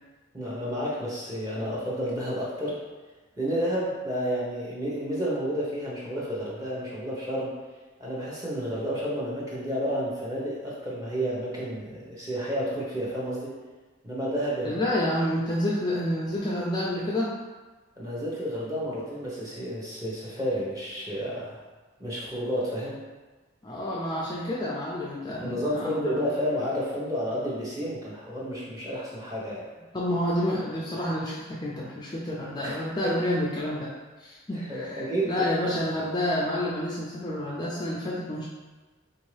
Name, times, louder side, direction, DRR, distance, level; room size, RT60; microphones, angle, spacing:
voice 1, 0.3-2.8 3.4-7.5 8.0-13.5 14.0-14.8 18.0-21.6 22.0-23.0 25.4-29.6 32.6-32.8 33.0-33.1 34.5-35.4, equal, 15° right, -6 dB, 0.8 m, -31 dB
voice 2, 14.6-17.3 23.6-26.3 29.9-33.9 34.2-38.4, left 1 dB, 20° left, -6 dB, 0.3 m, -29 dB
3.6 x 2.7 x 3.2 m, 1.3 s
head